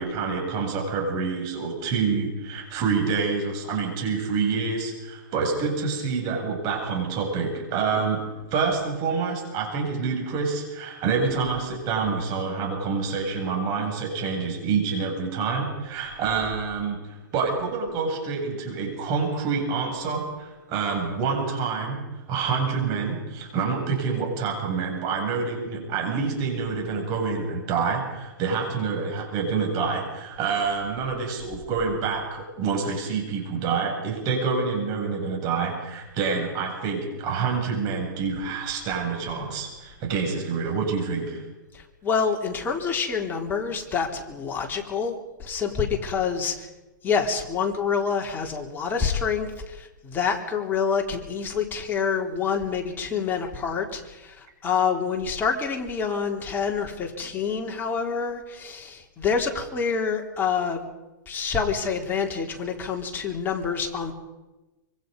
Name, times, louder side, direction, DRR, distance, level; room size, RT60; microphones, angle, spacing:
voice 1, 0.0-17.0 17.3-41.4, right 5 dB, 35° right, 2 dB, 7.5 m, -27 dB
voice 2, 41.7-46.7 47.0-60.8 61.3-64.1, left 6 dB, 20° left, 1 dB, 3.6 m, -27 dB
25.5 x 24.5 x 5.4 m, 1.1 s
hypercardioid pair, 140°, 11 cm